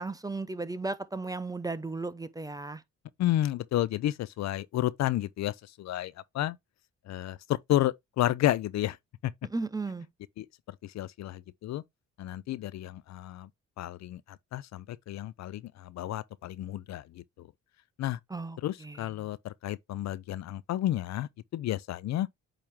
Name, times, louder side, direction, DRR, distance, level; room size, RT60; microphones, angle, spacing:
voice 1, 0.0-2.8 9.5-10.1 18.3-18.6 18.8-19.0, right 3 dB, 10° right, 0.6 m, -35 dB
voice 2, 3.2-6.6 7.1-9.0 9.2-9.3 10.4-11.8 12.2-13.5 13.8-17.5 18.0-18.2 18.6-22.3, left 14 dB, 60° left, 0.5 m, -31 dB
8.7 x 3.1 x 3.5 m
cardioid pair, 90°, 30 cm